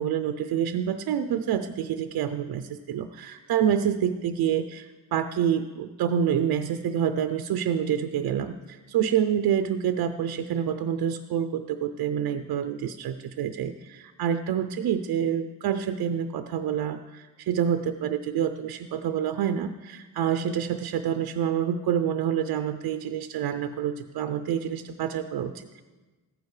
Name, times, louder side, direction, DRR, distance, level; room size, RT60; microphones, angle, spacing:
voice 1, 0.0-25.8, right 9 dB, 75° right, 9 dB, 0.5 m, -27 dB
14.0 x 9.5 x 3.2 m, 1.2 s
cardioid pair, 105°, 37 cm